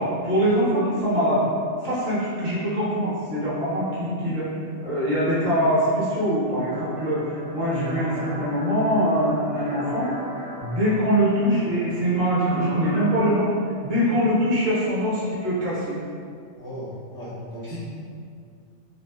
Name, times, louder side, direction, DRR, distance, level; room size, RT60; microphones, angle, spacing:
voice 1, 0.0-1.4 1.8-4.5 4.8-10.1 10.6-13.5 13.8-16.0 17.7-17.8, equal, 60° right, -10 dB, 1.0 m, -23 dB
sound 1, 6.7-13.3, right 1 dB, 40° right, 0.6 m, -38 dB
voice 2, 16.6-17.8, equal, 5° left, -10 dB, 0.4 m, -36 dB
2.7 x 2.0 x 2.2 m, 2.3 s
omnidirectional pair, 1.2 m